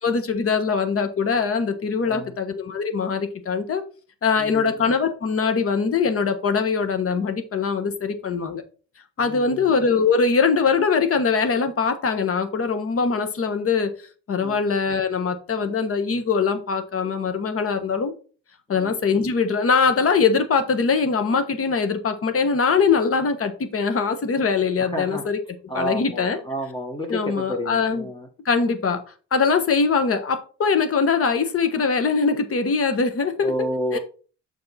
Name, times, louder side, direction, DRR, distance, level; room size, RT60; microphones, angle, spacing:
voice 1, 0.0-3.8 4.2-8.6 9.2-13.9 14.3-18.1 18.7-25.4 25.7-26.4 27.1-28.1 28.4-29.0 29.3-33.5 33.9-34.0, left 5 dB, 50° left, 8 dB, 1.2 m, -22 dB
voice 2, 2.0-2.3 4.4-4.7 9.2-9.6 14.4-14.6 18.7-19.0 24.8-25.2 25.7-28.3 33.4-34.0, equal, 15° left, 1 dB, 1.5 m, -30 dB
6.8 x 4.7 x 4.1 m, 0.39 s
cardioid pair, 90°, 30 cm